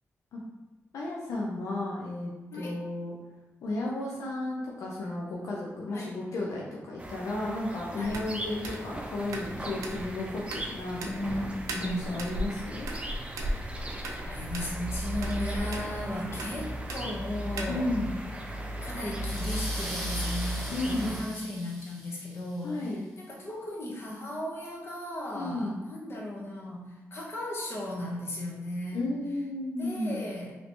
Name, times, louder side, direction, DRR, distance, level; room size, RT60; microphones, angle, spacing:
voice 1, 0.9-3.1 3.6-11.5 11.8-12.9 17.7-18.1 20.7-21.1 22.6-23.1 25.3-25.8 28.9-30.3, left 2 dB, 85° left, -3 dB, 0.5 m, -33 dB
sound 1, 7.0-21.2, right 1 dB, 20° right, 0.5 m, -37 dB
voice 2, 7.9-8.2 11.0-12.1 14.2-18.0 18.8-29.1 29.8-30.5, left 1 dB, 50° left, -3 dB, 1.0 m, -36 dB
sound 2, 8.0-17.9, right 1 dB, 90° right, 0.4 m, -39 dB
sound 3, 19.2-22.6, equal, ahead, 1.1 m, -41 dB
3.1 x 2.8 x 2.9 m, 1.1 s
cardioid pair, 75°, 5 cm